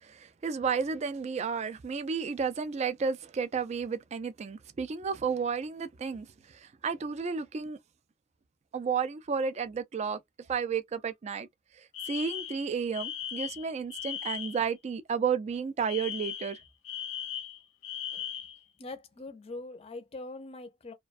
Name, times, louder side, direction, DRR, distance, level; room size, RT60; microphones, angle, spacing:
voice 1, 0.0-7.8 8.7-11.5 11.7-16.6, right 6 dB, 35° right, 0.3 m, -32 dB
Alarm, 11.9-14.7 15.9-18.6, left 9 dB, 90° left, 0.4 m, -38 dB
voice 2, 18.8-20.9, left 2 dB, 30° left, 0.5 m, -42 dB
2.3 x 2.2 x 2.4 m
head